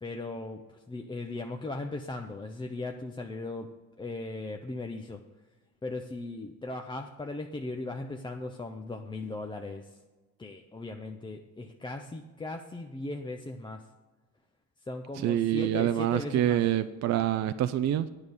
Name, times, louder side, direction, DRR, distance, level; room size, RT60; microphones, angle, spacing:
voice 1, 0.0-3.7 4.0-5.2 5.8-10.0 10.4-13.8 14.8-16.6, left 2 dB, 10° left, 3 dB, 0.5 m, -38 dB
voice 2, 15.2-18.1, right 11 dB, 45° right, 11 dB, 0.4 m, -26 dB
9.8 x 5.3 x 7.9 m, 1.3 s
cardioid pair, 115°, 39 cm